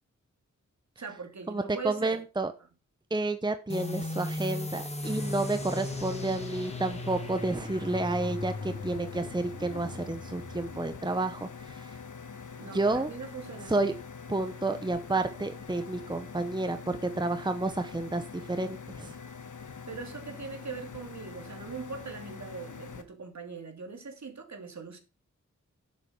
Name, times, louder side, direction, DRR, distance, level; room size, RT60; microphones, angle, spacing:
voice 1, 1.0-2.2 12.6-13.9 19.9-25.0, right 5 dB, 65° right, 2.7 m, -41 dB
voice 2, 1.5-2.5 3.1-11.9 12.7-13.1 13.7-13.9 14.3-19.1, right 2 dB, 15° right, 0.8 m, -30 dB
sound 1, 3.7-10.9, left 2 dB, 20° left, 2.0 m, -37 dB
sound 2, 5.0-23.0, left 5 dB, 75° left, 1.4 m, -44 dB
10.5 x 8.0 x 5.4 m
wide cardioid pair, 110°, 31 cm